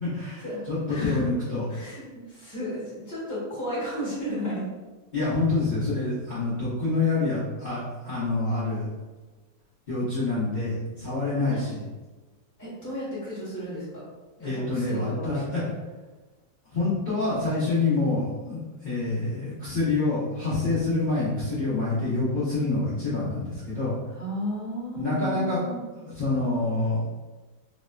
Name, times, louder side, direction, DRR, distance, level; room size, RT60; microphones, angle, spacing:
voice 1, 0.0-1.7 5.1-8.9 9.9-11.9 14.4-15.6 16.7-23.9 25.0-25.6 26.0-27.0, left 3 dB, 35° left, -12 dB, 0.9 m, -27 dB
voice 2, 0.9-1.2 1.7-4.7 11.5-11.6 12.6-14.0 14.4-15.7 24.1-25.8, equal, 10° left, -9 dB, 1.2 m, -34 dB
3.2 x 2.7 x 2.3 m, 1.2 s
omnidirectional pair, 1.8 m